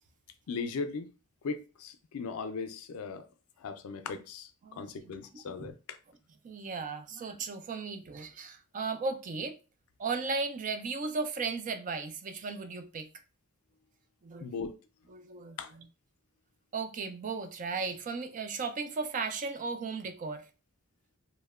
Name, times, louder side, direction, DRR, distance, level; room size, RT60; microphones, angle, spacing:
voice 1, 0.5-1.1 1.4-3.2 3.6-4.5 4.8-6.0 14.4-14.7 15.6-15.7, left 4 dB, 80° left, 0.4 m, -38 dB
voice 2, 4.6-5.1 5.6-5.7 6.4-9.6 10.0-13.1 14.2-14.5 15.1-15.9 16.7-20.5, right 4 dB, 35° right, 0.3 m, -36 dB
2.8 x 2.1 x 2.3 m
head